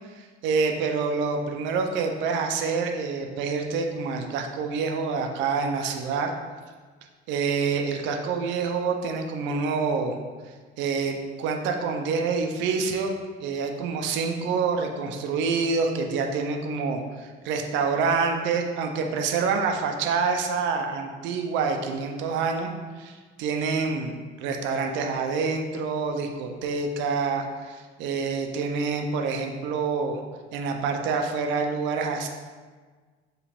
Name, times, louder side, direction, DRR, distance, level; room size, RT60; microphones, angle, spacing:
voice 1, 0.2-6.3 7.3-10.2 10.8-13.1 13.4-22.7 23.0-30.2 30.5-32.3, right 5 dB, 65° right, 4 dB, 0.5 m, -27 dB
4.8 x 3.1 x 3.4 m, 1.5 s
cardioid pair, 170°, 21 cm